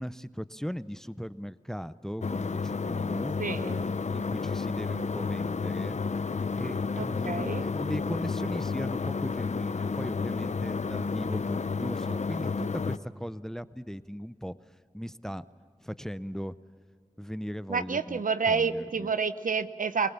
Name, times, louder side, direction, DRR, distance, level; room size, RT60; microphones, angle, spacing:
voice 1, 0.0-6.0 6.6-14.5 14.9-15.4 15.8-16.6 17.2-19.1, equal, 5° left, 15 dB, 0.6 m, -38 dB
sound 1, 2.2-13.0, left 5 dB, 60° left, 0.6 m, -31 dB
voice 2, 3.4-3.8 7.0-7.7 17.7-20.1, right 5 dB, 80° right, 12 dB, 0.7 m, -29 dB
24.5 x 18.5 x 7.2 m, 2.1 s
wide cardioid pair, 45°, 14 cm